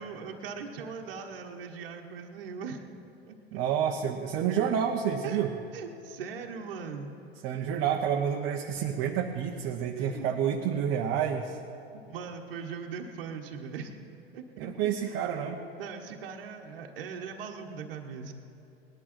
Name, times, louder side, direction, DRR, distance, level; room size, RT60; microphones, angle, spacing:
voice 1, 0.0-2.8 3.3-3.6 5.2-5.4 5.7-7.1 9.9-10.3 11.9-13.9 14.3-14.4 15.0-15.2 15.8-18.3, right 6 dB, 60° right, 2 dB, 1.3 m, -40 dB
voice 2, 3.5-5.5 7.4-11.6 14.6-15.6, right 8 dB, 40° right, 2 dB, 0.9 m, -29 dB
19.0 x 11.0 x 4.4 m, 2.8 s
figure-of-eight pair, 90°, 31 cm